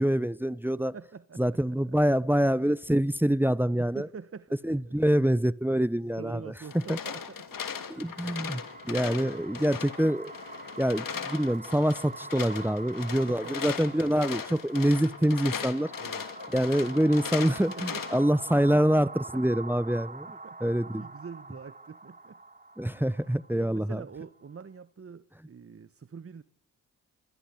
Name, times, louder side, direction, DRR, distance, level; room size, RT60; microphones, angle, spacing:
voice 1, 0.0-0.9 1.4-4.1 4.6-7.0 7.9-10.3 10.8-15.9 16.5-21.0 22.8-24.0, equal, 5° right, 1.0 m, -26 dB
voice 2, 0.8-1.8 3.8-5.0 6.2-8.0 9.1-9.7 13.3-13.9 16.0-16.3 17.7-19.2 19.9-22.4 22.9-23.3 23.5-26.4, right 6 dB, 40° right, 1.3 m, -46 dB
sound 1, 6.6-18.2, left 7 dB, 60° left, 2.8 m, -38 dB
sound 2, 7.5-24.7, right 3 dB, 20° right, 1.6 m, -45 dB
27.5 x 21.0 x 8.1 m
hypercardioid pair, 40°, 37 cm